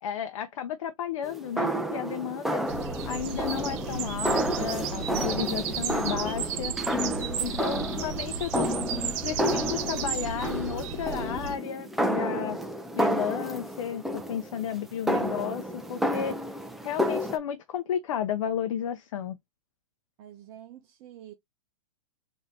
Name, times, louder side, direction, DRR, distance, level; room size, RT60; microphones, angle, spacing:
voice 1, 0.0-2.6 3.1-6.7 7.4-8.7 9.2-12.6 12.9-16.4 16.8-19.4, left 9 dB, 65° left, 0.7 m, -33 dB
sound 1, 1.2-17.4, equal, ahead, 0.4 m, -31 dB
sound 2, 2.7-11.6, right 7 dB, 55° right, 1.3 m, -34 dB
voice 2, 20.2-21.3, right 11 dB, 35° right, 0.8 m, -47 dB
4.1 x 2.7 x 3.1 m
hypercardioid pair, 145°, 18 cm